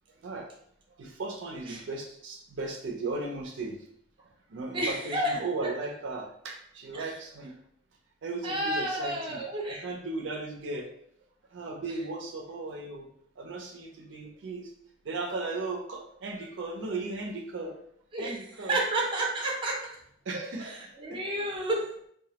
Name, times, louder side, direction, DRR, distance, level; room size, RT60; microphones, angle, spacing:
voice 1, 1.0-3.8 4.5-7.5 8.2-9.4 9.7-10.9 11.5-13.1 13.4-14.7 15.1-17.8 18.2-18.8 20.3-20.7 21.1-21.2, right 3 dB, 80° right, 1 dB, 0.4 m, -36 dB
voice 2, 4.7-5.7 6.9-7.2 8.4-9.8 18.1-19.8 20.6-21.9, right 1 dB, 30° right, -2 dB, 0.5 m, -31 dB
2.2 x 2.0 x 2.8 m, 0.68 s
head